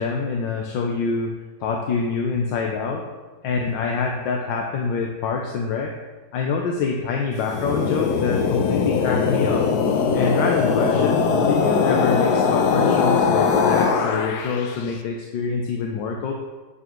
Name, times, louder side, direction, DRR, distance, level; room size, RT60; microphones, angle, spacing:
voice 1, 0.0-1.3 1.6-3.0 3.4-5.9 6.3-9.7 10.1-16.3, left 5 dB, 90° left, 1 dB, 1.4 m, -25 dB
sound 1, 7.4-14.8, left 5 dB, 70° left, 1.1 m, -20 dB
8.7 x 6.9 x 3.0 m, 1.3 s
omnidirectional pair, 2.0 m